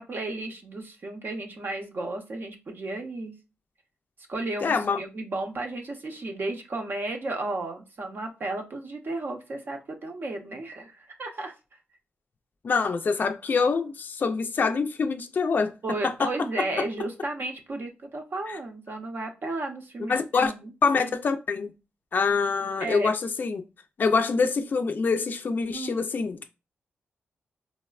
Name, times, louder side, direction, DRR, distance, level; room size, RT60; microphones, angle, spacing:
voice 1, 0.0-3.3 4.3-11.5 15.8-20.7 22.8-23.1 25.7-26.0, right 2 dB, 55° right, 0.7 m, -33 dB
voice 2, 4.6-5.0 12.6-15.7 16.0-16.3 18.5-18.6 20.1-20.5 20.8-21.7 22.1-23.6 24.0-26.5, left 4 dB, 45° left, 0.3 m, -25 dB
4.0 x 2.1 x 2.3 m
cardioid pair, 80°, 4 cm